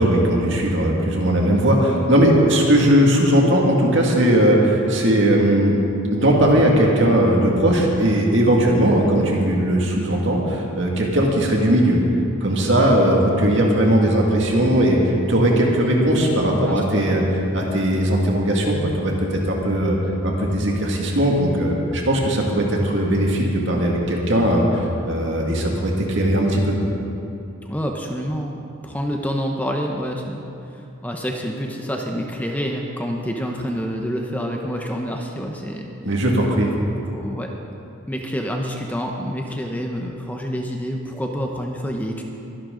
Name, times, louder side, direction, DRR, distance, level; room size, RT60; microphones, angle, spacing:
voice 1, 0.0-5.7 6.1-12.0 12.4-17.2 17.5-20.0 20.2-26.8 36.0-36.7, right 1 dB, 60° right, -1 dB, 2.2 m, -18 dB
voice 2, 16.5-17.2 27.6-28.6 28.8-35.9 36.8-36.9 37.1-37.5 38.1-42.2, equal, 5° left, 1 dB, 0.8 m, -28 dB
22.5 x 11.0 x 3.9 m, 2.9 s
head